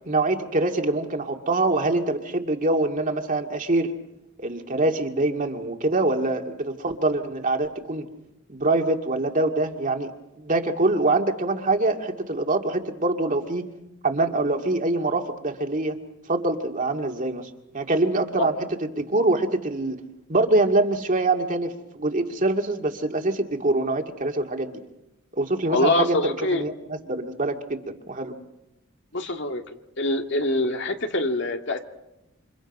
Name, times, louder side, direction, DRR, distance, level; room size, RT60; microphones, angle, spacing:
voice 1, 0.1-3.9 4.4-8.1 8.5-10.1 10.4-13.6 14.0-16.0 16.3-18.5 18.9-20.0 20.3-24.8 25.4-28.3, right 2 dB, 40° right, 4 dB, 2.2 m, -24 dB
voice 2, 25.7-26.6 29.1-29.6 30.0-31.8, left 2 dB, 65° left, 4 dB, 2.3 m, -24 dB
28.5 x 27.5 x 5.5 m, 0.89 s
head